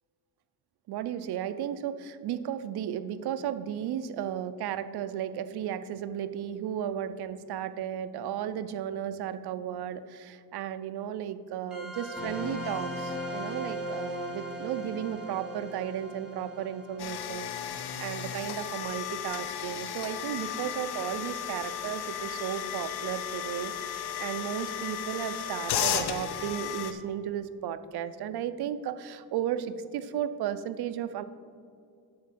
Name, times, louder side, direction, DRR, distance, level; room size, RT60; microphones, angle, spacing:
voice 1, 0.9-31.2, right 10 dB, 75° right, 11 dB, 0.6 m, -34 dB
sound 1, 11.7-18.8, equal, ahead, 2.1 m, -38 dB
sound 2, 17.0-26.9, left 9 dB, 75° left, 0.8 m, -34 dB
9.5 x 4.3 x 7.4 m, 2.3 s
wide cardioid pair, 170°, 39 cm